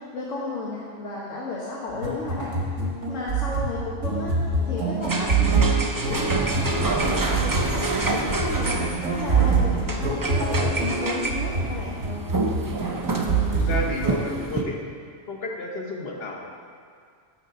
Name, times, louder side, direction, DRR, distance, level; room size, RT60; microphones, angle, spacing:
voice 1, 0.0-2.6 3.1-7.0 7.2-8.8 9.1-12.0, left 2 dB, 85° left, -6 dB, 1.5 m, -33 dB
sound 1, 1.9-14.3, right 4 dB, 85° right, 1.7 m, -26 dB
sound 2, 5.0-14.6, right 3 dB, 35° right, 0.3 m, -28 dB
voice 2, 13.5-14.8 15.3-16.5, left 3 dB, 55° left, 0 dB, 1.3 m, -31 dB
11.0 x 3.8 x 6.6 m, 2.2 s
omnidirectional pair, 1.3 m